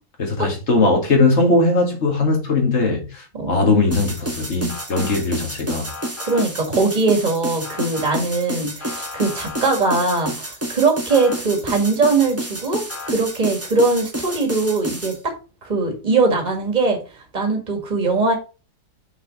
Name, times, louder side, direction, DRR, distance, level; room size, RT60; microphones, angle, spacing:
voice 1, 0.2-5.9, left 3 dB, 45° left, 2.0 m, -19 dB
voice 2, 3.3-3.8 6.2-12.8 13.1-15.3 15.6-17.0 17.3-18.3, right 3 dB, 25° right, 1.7 m, -20 dB
sound 1, 3.9-15.2, right 1 dB, 10° right, 0.9 m, -30 dB
Motor vehicle (road) / Siren, 4.7-5.2 5.9-6.5 7.6-8.2 8.8-9.7 11.1-11.4 12.9-13.1, left 5 dB, 75° left, 2.7 m, -35 dB
6.0 x 4.0 x 5.0 m
omnidirectional pair, 1.7 m